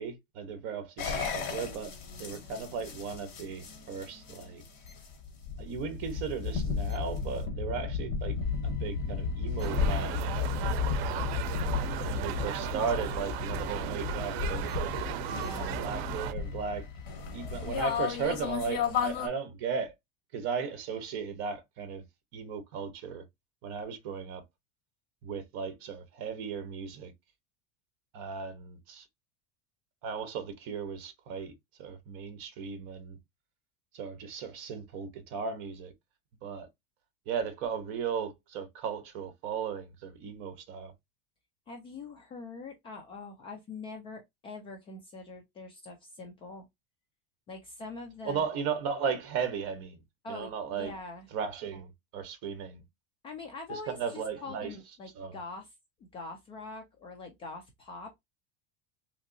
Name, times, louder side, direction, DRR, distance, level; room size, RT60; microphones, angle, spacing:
voice 1, 0.0-4.6 5.6-8.4 8.6-10.3 12.0-14.8 15.8-16.9 17.3-19.9 20.3-22.0 22.3-23.2 23.6-24.4 25.2-27.1 28.1-29.1 30.0-31.5 31.8-33.2 33.9-35.9 36.4-36.7 37.3-40.9 48.2-50.0 50.3-50.9 51.3-52.8 53.7-54.7 55.1-55.4, right 6 dB, 45° right, 1.0 m, -36 dB
sound 1, 1.0-19.3, left 5 dB, 60° left, 1.5 m, -34 dB
sound 2, 9.6-16.3, right 11 dB, 90° right, 0.6 m, -36 dB
voice 2, 15.3-15.8 41.7-46.7 47.5-48.5 50.2-51.3 53.2-55.7 56.0-58.1, left 3 dB, 20° left, 0.3 m, -43 dB
3.4 x 2.9 x 2.6 m
cardioid pair, 180°, 30 cm